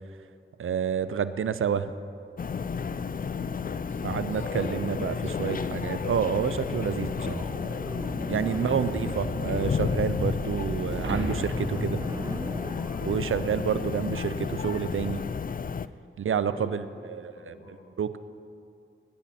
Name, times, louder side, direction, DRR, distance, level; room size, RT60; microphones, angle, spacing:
voice 1, 0.6-1.9 4.0-7.5 8.3-12.1 13.0-15.2 16.2-17.6 18.0-18.2, right 7 dB, 80° right, 13 dB, 0.5 m, -29 dB
sound 1, 2.4-15.9, left 6 dB, 45° left, 0.4 m, -32 dB
voice 2, 3.2-5.8 8.5-8.9 16.5-17.9, left 2 dB, 75° left, 3 dB, 1.6 m, -45 dB
sound 2, 6.0-13.6, right 2 dB, 15° right, 0.5 m, -38 dB
sound 3, 10.9-13.4, right 1 dB, 65° right, 2.0 m, -36 dB
18.0 x 9.9 x 4.2 m, 2.4 s
cardioid pair, 45°, 21 cm